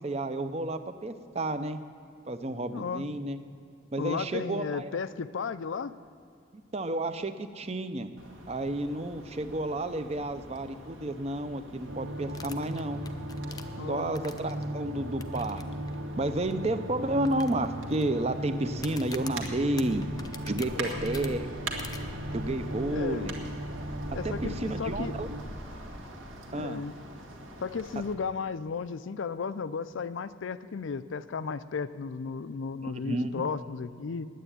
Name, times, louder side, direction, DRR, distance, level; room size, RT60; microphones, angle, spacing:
voice 1, 0.0-1.8 2.3-3.4 3.9-4.9 6.7-8.1 8.5-13.0 13.9-15.6 16.2-20.1 20.5-21.5 22.3-23.4 24.2-25.3 26.5-26.8 32.8-33.4, right 1 dB, 30° right, 10 dB, 0.6 m, -31 dB
voice 2, 2.7-3.1 4.0-5.9 13.8-14.1 20.7-21.1 22.9-23.3 24.1-25.1 26.5-26.9 27.6-34.3, left 5 dB, 70° left, 14 dB, 0.4 m, -34 dB
sound 1, 8.2-28.1, right 1 dB, 75° right, 1.8 m, -43 dB
sound 2, 11.8-25.4, equal, 60° right, 1.2 m, -38 dB
sound 3, 12.3-14.6 15.2-15.6 15.9-16.0 16.5-16.6 17.2-18.0 18.7-21.3 21.8-22.0, left 5 dB, 20° left, 0.5 m, -44 dB
9.3 x 8.9 x 9.9 m, 2.5 s
head